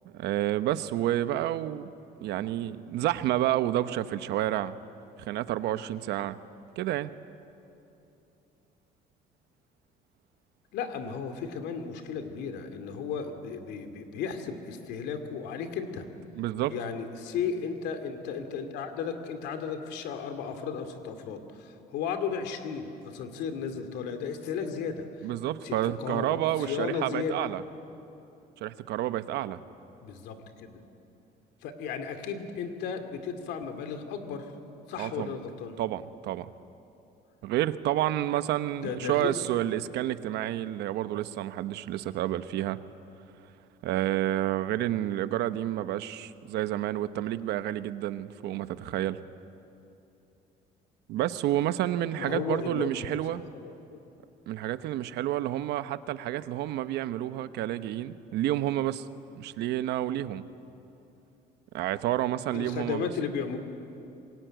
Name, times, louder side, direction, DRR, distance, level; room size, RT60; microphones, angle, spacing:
voice 1, 0.0-1.9 2.2-4.7 5.2-6.4 6.8-7.1 16.3-16.7 25.2-27.6 28.6-29.6 35.0-35.3 35.8-36.5 37.4-42.8 43.8-49.2 51.1-53.4 54.5-59.0 59.3-60.4 61.7-63.1, right 13 dB, 80° right, 12 dB, 1.0 m, -29 dB
voice 2, 10.7-16.0 16.7-25.1 25.6-27.3 30.0-30.8 31.6-34.5 34.9-35.8 38.8-39.3 52.2-53.2 53.5-54.0 62.5-63.6, left 6 dB, 85° left, 7 dB, 2.6 m, -34 dB
26.5 x 22.0 x 9.2 m, 2.8 s
cardioid pair, 110°, 17 cm